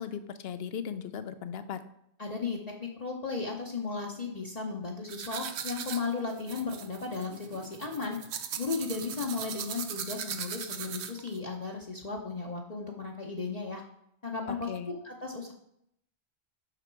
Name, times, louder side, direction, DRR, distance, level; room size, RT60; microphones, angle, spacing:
voice 1, 0.0-1.8 14.5-14.9, left 8 dB, 70° left, 11 dB, 0.9 m, -37 dB
voice 2, 2.2-8.2 8.6-13.8 14.2-15.5, left 4 dB, 40° left, -1 dB, 0.9 m, -35 dB
sound 1, 5.1-11.4, right 8 dB, 80° right, 0.9 m, -39 dB
6.0 x 5.8 x 4.5 m, 0.75 s
omnidirectional pair, 1.1 m